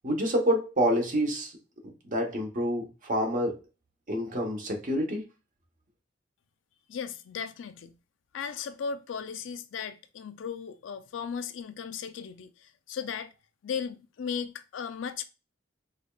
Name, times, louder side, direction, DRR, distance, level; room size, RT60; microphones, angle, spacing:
voice 1, 0.0-1.5 2.1-3.6 4.1-5.2, equal, 45° right, 1.0 m, -27 dB
voice 2, 6.9-7.9 8.3-13.3 13.6-15.2, left 6 dB, 80° left, 0.4 m, -36 dB
4.9 x 2.3 x 2.3 m
head